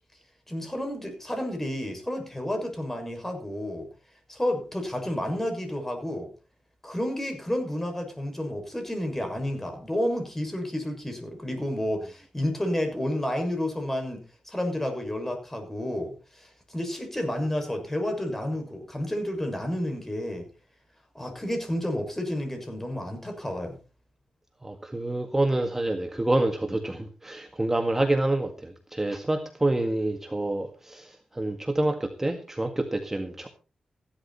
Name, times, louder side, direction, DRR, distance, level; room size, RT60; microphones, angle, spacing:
voice 1, 0.5-3.9 4.3-6.3 6.8-20.5 21.1-23.8, left 1 dB, 15° left, 4 dB, 6.6 m, -31 dB
voice 2, 24.6-33.5, right 2 dB, 15° right, 5 dB, 1.9 m, -27 dB
15.5 x 12.0 x 4.4 m, 0.35 s
cardioid pair, 70°, 2 cm